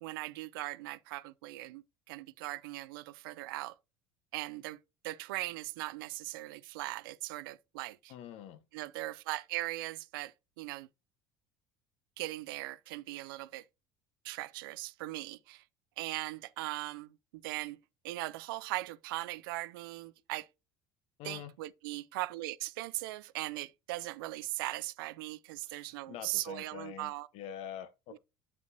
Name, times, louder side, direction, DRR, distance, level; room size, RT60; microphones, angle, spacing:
voice 1, 0.0-3.7 4.3-4.8 5.0-8.1 8.7-10.9 12.2-13.6 14.2-15.6 16.0-17.2 17.4-17.8 18.0-20.5 21.2-27.3 28.1-28.2, right 18 dB, 80° right, 0.4 m, -39 dB
voice 2, 8.1-8.6 21.2-21.5 25.6-28.2, left 9 dB, 65° left, 0.8 m, -45 dB
8.0 x 5.3 x 2.6 m
hypercardioid pair, 80°, 11 cm